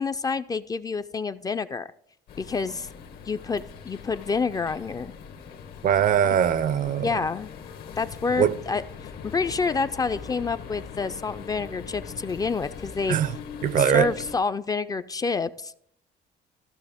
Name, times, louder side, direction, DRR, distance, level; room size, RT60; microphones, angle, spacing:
voice 1, 0.0-1.9 2.4-2.9 3.3-5.1 7.0-7.5 8.0-13.2 13.8-15.8, left 4 dB, 20° left, 0.3 m, -28 dB
sound 1, 2.3-14.4, left 6 dB, 70° left, 1.1 m, -41 dB
voice 2, 5.8-7.1 8.4-8.5 13.1-13.3 13.6-14.1, right 9 dB, 50° right, 0.5 m, -21 dB
14.5 x 6.0 x 3.5 m
cardioid pair, 110°, 17 cm